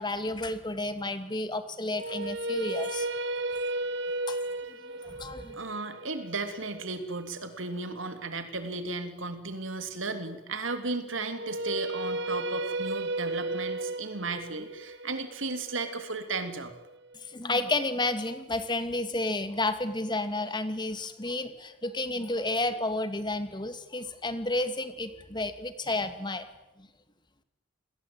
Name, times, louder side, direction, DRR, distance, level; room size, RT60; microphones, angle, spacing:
voice 1, 0.0-3.1 4.3-4.4 5.0-5.6 17.1-26.4 26.8-26.9, left 2 dB, 25° left, 10 dB, 2.3 m, -31 dB
sound 1, 1.9-8.0 11.2-17.3, right 2 dB, 60° right, 1.3 m, -34 dB
voice 2, 5.5-16.7, right 3 dB, 80° right, 8 dB, 3.3 m, -35 dB
29.0 x 21.0 x 9.0 m, 0.91 s
head